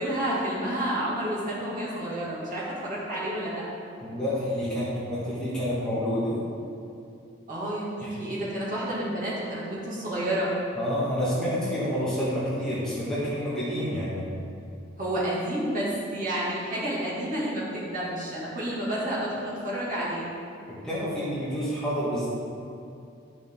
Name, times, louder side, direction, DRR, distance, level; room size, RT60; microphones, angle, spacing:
voice 1, 0.0-3.6 7.5-10.5 15.0-20.3, right 1 dB, 40° right, -8 dB, 2.4 m, -30 dB
voice 2, 4.0-6.3 8.0-8.2 10.8-14.3 20.8-22.3, equal, 5° left, -10 dB, 2.0 m, -28 dB
11.5 x 6.7 x 3.8 m, 2.6 s
head